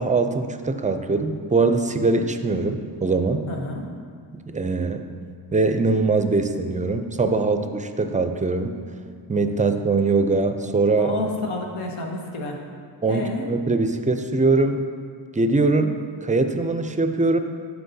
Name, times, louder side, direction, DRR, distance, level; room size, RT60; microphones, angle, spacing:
voice 1, 0.0-3.4 4.3-5.0 5.5-8.7 9.3-11.1 13.0-14.8 15.3-17.4, right 3 dB, 15° right, 7 dB, 0.4 m, -22 dB
voice 2, 3.5-3.9 11.0-12.6 13.1-13.5, left 2 dB, 85° left, 1 dB, 1.0 m, -30 dB
11.5 x 4.6 x 2.7 m, 2.1 s
cardioid pair, 65°, 48 cm